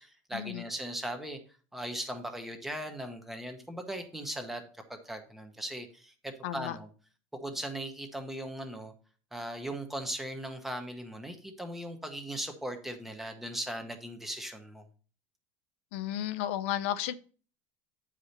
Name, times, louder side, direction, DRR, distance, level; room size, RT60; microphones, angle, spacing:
voice 1, 0.0-1.4 1.7-4.6 4.9-6.9 7.3-8.9 9.3-14.8, right 1 dB, 5° right, 6 dB, 1.0 m, -38 dB
voice 2, 6.4-6.8 15.9-17.1, left 12 dB, 75° left, 12 dB, 0.5 m, -33 dB
9.2 x 4.9 x 4.2 m, 0.40 s
cardioid pair, 160°, 7 cm